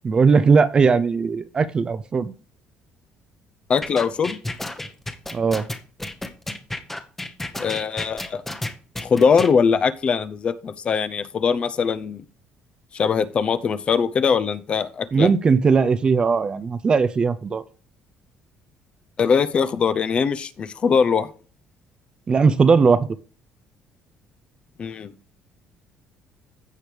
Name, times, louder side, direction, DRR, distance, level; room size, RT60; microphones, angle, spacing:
voice 1, 0.0-2.3 5.3-5.7 15.1-17.6 22.3-23.1, right 5 dB, 30° right, 0.5 m, -18 dB
voice 2, 3.7-4.4 7.6-8.4 9.0-12.2 12.9-15.3 19.2-21.3 24.8-25.1, left 6 dB, 35° left, 0.6 m, -21 dB
sound 1, 3.8-9.5, left 1 dB, 10° left, 0.9 m, -31 dB
15.0 x 5.0 x 3.3 m
cardioid pair, 135°, 3 cm